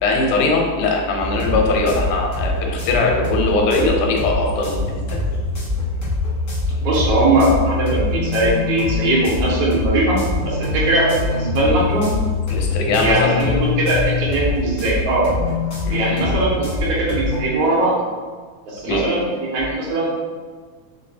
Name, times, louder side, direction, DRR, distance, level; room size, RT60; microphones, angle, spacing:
voice 1, 0.0-5.2 12.5-13.4 15.9-16.0 18.8-19.1, left 3 dB, 85° left, 1 dB, 2.1 m, -20 dB
sound 1, 1.2-17.4, left 3 dB, 65° left, 0.9 m, -24 dB
voice 2, 6.8-10.2 10.4-12.1 13.0-15.3 15.9-18.0 18.7-20.2, right 2 dB, 75° right, -6 dB, 2.1 m, -20 dB
5.1 x 2.2 x 2.6 m, 1.5 s
omnidirectional pair, 3.5 m